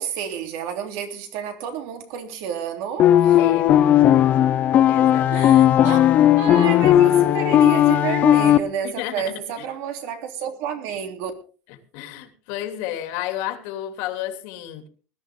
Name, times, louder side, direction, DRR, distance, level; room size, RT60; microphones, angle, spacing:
voice 1, 0.0-3.4 5.3-6.0 6.4-11.3, right 8 dB, 70° right, 3.3 m, -30 dB
sound 1, 3.0-8.6, left 11 dB, 35° left, 0.7 m, -16 dB
voice 2, 3.4-3.7 4.9-6.0 8.8-9.7 11.7-14.9, left 12 dB, 75° left, 2.8 m, -32 dB
20.5 x 12.5 x 3.7 m
cardioid pair, 175°, 4 cm